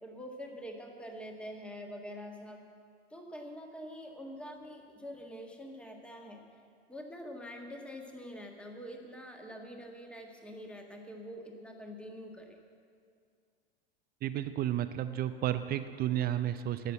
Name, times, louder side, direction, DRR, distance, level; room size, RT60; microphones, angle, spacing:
voice 1, 0.0-2.6 3.1-6.4 6.9-12.6, equal, 5° left, 2 dB, 1.6 m, -45 dB
voice 2, 14.2-16.9, right 12 dB, 30° right, 11 dB, 0.5 m, -32 dB
10.5 x 8.1 x 8.6 m, 2.2 s
hypercardioid pair, 90°, 30 cm